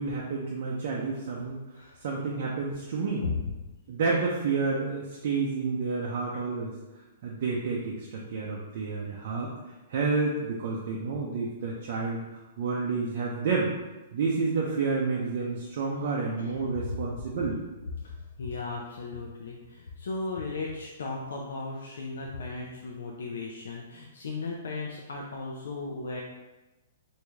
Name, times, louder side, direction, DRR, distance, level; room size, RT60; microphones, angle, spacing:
voice 1, 0.0-1.6 2.0-3.2 3.9-6.8 7.2-9.5 9.9-13.7 14.1-17.6, right 4 dB, 45° right, -3 dB, 0.5 m, -30 dB
voice 2, 18.4-26.2, left 3 dB, 80° left, -2 dB, 0.5 m, -36 dB
3.4 x 2.6 x 3.1 m, 1.1 s
hypercardioid pair, 170°, 0 cm